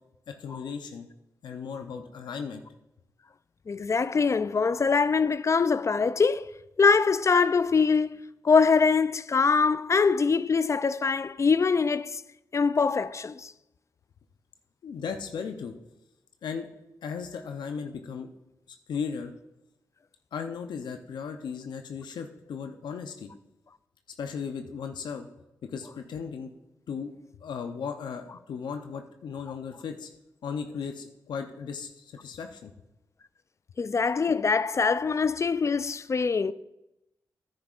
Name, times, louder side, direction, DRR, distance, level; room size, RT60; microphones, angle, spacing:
voice 1, 0.3-1.1 1.4-2.6 14.8-15.7 16.4-16.7 17.0-18.3 18.7-19.3 20.3-23.3 24.2-25.3 25.6-26.5 26.9-27.1 27.4-30.1 30.4-32.7, left 6 dB, 80° left, 0.6 m, -36 dB
voice 2, 3.7-6.5 6.8-12.2 12.5-13.5 33.8-36.5, left 5 dB, 40° left, 0.4 m, -23 dB
10.5 x 9.7 x 2.5 m
supercardioid pair, 45°, 8 cm